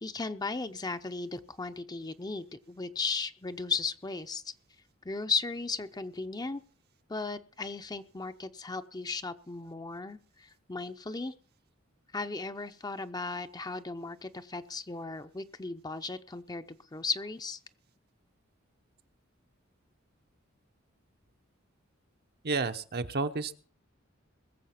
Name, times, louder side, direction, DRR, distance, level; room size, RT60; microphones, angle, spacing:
voice 1, 0.0-4.5 5.0-6.6 7.1-11.3 12.1-17.6, left 4 dB, 20° left, 9 dB, 0.7 m, -36 dB
voice 2, 22.4-23.6, right 4 dB, 50° right, 9 dB, 0.9 m, -31 dB
21.0 x 7.5 x 5.8 m, 0.43 s
head